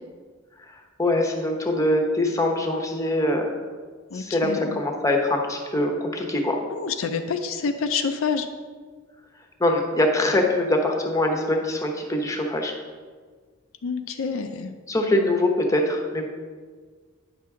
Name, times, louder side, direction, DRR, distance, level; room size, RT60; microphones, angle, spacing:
voice 1, 1.0-3.5 4.1-6.6 9.6-12.7 14.9-16.3, left 1 dB, 15° left, 2 dB, 0.9 m, -23 dB
voice 2, 4.1-4.8 6.7-8.5 13.8-14.7, left 5 dB, 75° left, 7 dB, 0.5 m, -27 dB
9.3 x 5.9 x 3.7 m, 1.5 s
head